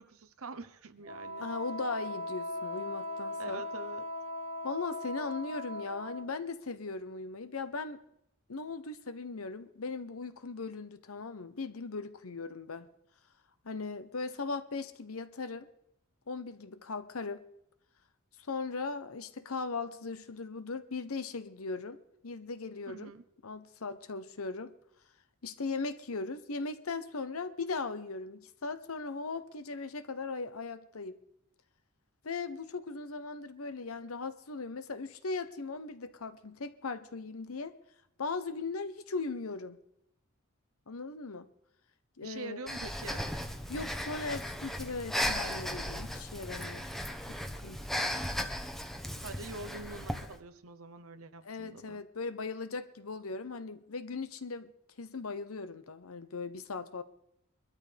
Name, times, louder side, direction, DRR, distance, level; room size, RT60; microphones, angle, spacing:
voice 1, 0.0-1.5 3.4-4.0 22.9-23.2 42.2-43.3 48.0-48.4 49.2-52.0, right 3 dB, 90° right, 12 dB, 0.9 m, -45 dB
Wind instrument woodwind instrument, 1.0-6.3, left 1 dB, 30° right, 1.0 m, -39 dB
voice 2, 1.4-3.6 4.6-8.0 8.5-12.9 13.6-15.7 16.3-17.4 18.4-23.1 23.4-24.7 25.4-31.1 32.2-37.7 38.2-39.8 40.9-41.5 42.2-42.6 43.7-46.8 47.3-47.8 51.4-54.7 55.0-57.0, left 4 dB, 85° left, 11 dB, 0.9 m, -38 dB
Breathing, 42.7-50.3, equal, ahead, 0.9 m, -36 dB
22.5 x 13.0 x 3.5 m, 0.77 s
head